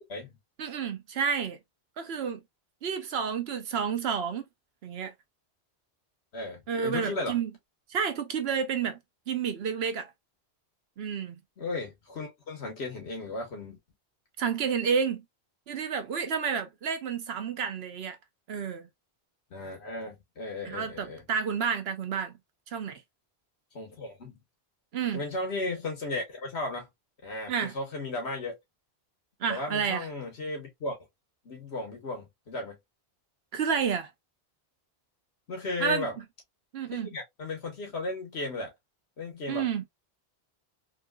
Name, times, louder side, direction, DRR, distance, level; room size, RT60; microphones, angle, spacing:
voice 1, 0.6-1.6 2.0-2.4 2.8-4.5 4.8-5.1 6.7-7.5 7.9-9.0 9.3-10.1 11.0-11.4 14.4-15.2 15.7-18.2 18.5-18.9 20.6-22.3 22.7-23.0 24.9-25.2 27.5-27.7 29.4-30.1 33.5-34.1 35.8-36.1 36.7-37.1 39.5-39.8, right 6 dB, 70° right, 1.0 m, -30 dB
voice 2, 6.3-7.4 11.6-13.8 19.5-21.2 23.7-24.4 25.1-26.9 27.2-28.6 29.5-31.0 31.4-32.8 35.5-36.2 36.9-38.7 39.2-39.6, left 2 dB, 75° left, 1.4 m, -35 dB
3.7 x 2.8 x 2.2 m
omnidirectional pair, 1.1 m